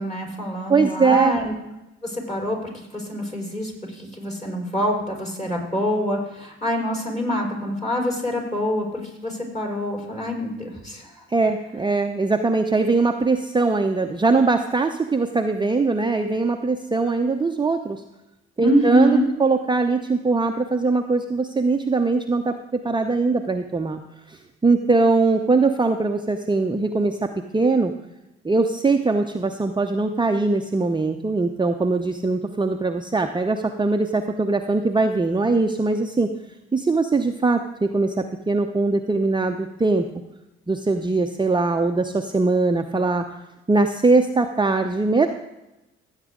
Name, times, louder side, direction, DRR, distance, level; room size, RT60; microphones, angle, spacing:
voice 1, 0.0-1.5 2.0-11.1 18.6-19.3, equal, 20° left, 0 dB, 4.3 m, -25 dB
voice 2, 0.7-1.4 11.3-18.0 18.6-24.0 24.3-27.9 28.4-36.3 36.7-40.0 40.7-43.4 43.7-45.3, right 3 dB, 15° right, 5 dB, 0.7 m, -21 dB
16.0 x 8.2 x 3.8 m, 0.95 s
hypercardioid pair, 45°, 31 cm